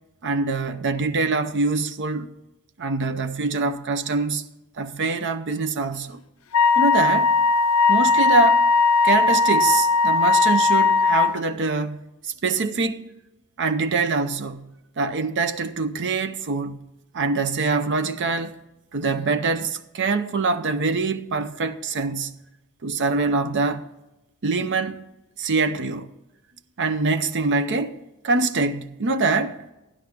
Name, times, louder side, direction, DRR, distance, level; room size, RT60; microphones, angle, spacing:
voice 1, 0.2-2.3 2.8-4.4 4.8-6.2 6.8-7.4 7.9-8.6 9.0-13.1 13.6-14.7 15.0-16.8 17.1-18.6 18.9-22.4 22.8-23.9 24.4-25.1 25.4-26.1 26.8-28.0 28.2-29.6, right 3 dB, 55° right, 0.6 m, -24 dB
Wind instrument woodwind instrument, 6.5-11.4, left 4 dB, 65° left, 0.4 m, -18 dB
12.0 x 11.0 x 3.5 m
head